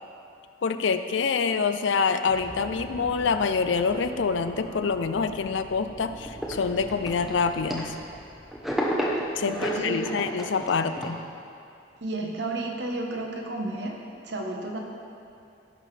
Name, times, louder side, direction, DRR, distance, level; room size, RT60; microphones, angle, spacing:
voice 1, 0.6-7.9 9.4-11.2, left 5 dB, 75° left, 10 dB, 0.4 m, -26 dB
sound 1, 2.3-10.3, equal, 20° left, 1.2 m, -45 dB
sound 2, 6.2-8.2 8.5-11.1, equal, ahead, 0.8 m, -31 dB
voice 2, 9.5-10.2 12.0-14.0 14.2-14.8, right 2 dB, 65° right, 0 dB, 1.1 m, -32 dB
16.0 x 5.9 x 3.3 m, 2.6 s
head